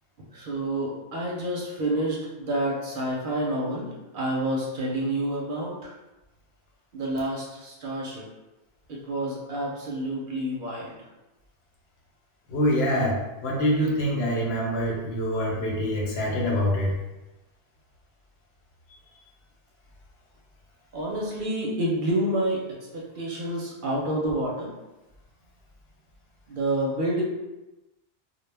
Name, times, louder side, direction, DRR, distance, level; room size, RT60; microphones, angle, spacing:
voice 1, 0.3-5.9 6.9-8.3 8.9-11.0 20.9-24.7 26.5-27.2, right 1 dB, 60° right, -3 dB, 0.6 m, -29 dB
voice 2, 12.5-13.2 13.4-17.0, equal, 75° left, -3 dB, 0.9 m, -25 dB
2.1 x 2.1 x 3.2 m, 1.0 s
omnidirectional pair, 1.1 m